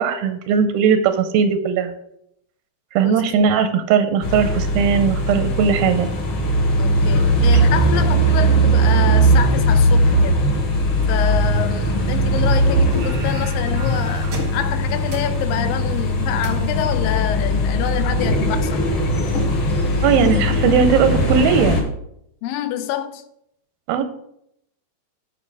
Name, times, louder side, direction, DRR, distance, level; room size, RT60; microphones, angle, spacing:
voice 1, 0.0-1.9 2.9-6.1 7.5-7.6 20.0-21.8 23.9-24.0, right 7 dB, 90° right, 9 dB, 2.5 m, -18 dB
sound 1, 4.2-21.8, equal, 55° left, 1.4 m, -19 dB
voice 2, 6.8-10.4 11.1-18.8 22.4-23.2, left 10 dB, 80° left, 12 dB, 2.2 m, -27 dB
sound 2, 12.9-17.8, right 3 dB, 60° right, 1.0 m, -38 dB
9.6 x 5.4 x 4.7 m, 0.75 s
omnidirectional pair, 4.3 m